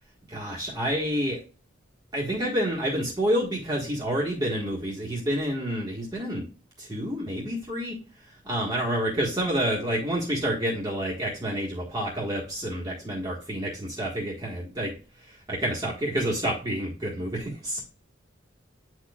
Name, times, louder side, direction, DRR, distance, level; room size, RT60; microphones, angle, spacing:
voice 1, 0.3-1.4 2.1-6.4 6.8-7.9 8.4-14.9 15.2-17.8, equal, 20° right, -4 dB, 1.5 m, -28 dB
9.1 x 4.5 x 2.3 m, 0.35 s
head